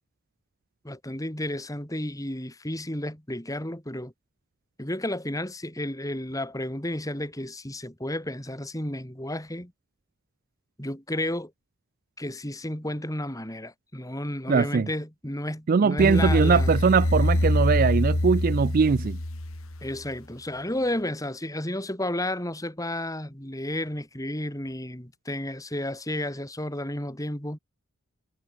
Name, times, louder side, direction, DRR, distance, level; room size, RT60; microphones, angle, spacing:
voice 1, 0.8-4.1 4.8-9.7 10.8-11.5 12.2-16.8 19.8-27.6, left 1 dB, 15° left, 4.2 m, -32 dB
voice 2, 14.5-14.9 15.7-19.2, right 5 dB, 40° right, 0.4 m, -21 dB
sound 1, 16.0-20.1, left 1 dB, 70° left, 2.4 m, -25 dB
head